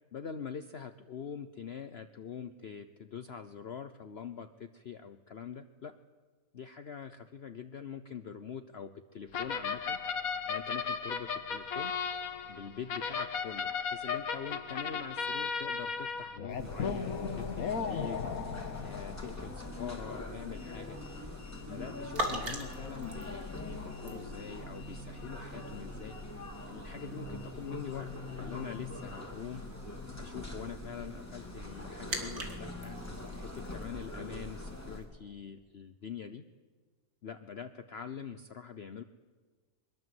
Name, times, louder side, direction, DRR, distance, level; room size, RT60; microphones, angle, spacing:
voice 1, 0.1-6.0 6.5-10.0 10.5-11.9 12.5-18.2 18.8-21.0 21.6-26.2 26.7-29.6 30.2-33.0 33.4-36.4 37.2-39.0, left 7 dB, 50° left, 9 dB, 1.0 m, -44 dB
sound 1, 9.3-19.7, left 6 dB, 70° left, 1.7 m, -36 dB
sound 2, 16.5-35.1, right 1 dB, 80° right, 3.5 m, -46 dB
sound 3, 16.6-35.0, left 2 dB, 10° left, 3.2 m, -43 dB
23.5 x 22.5 x 7.9 m, 1.4 s
omnidirectional pair, 1.6 m